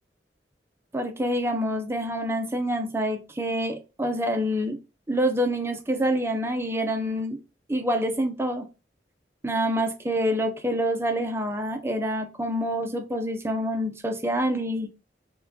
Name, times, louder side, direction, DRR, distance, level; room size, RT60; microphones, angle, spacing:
voice 1, 0.9-4.8 5.1-7.4 7.7-8.6 9.4-14.9, equal, 15° right, 6 dB, 0.4 m, -26 dB
4.4 x 2.2 x 2.6 m, 0.30 s
head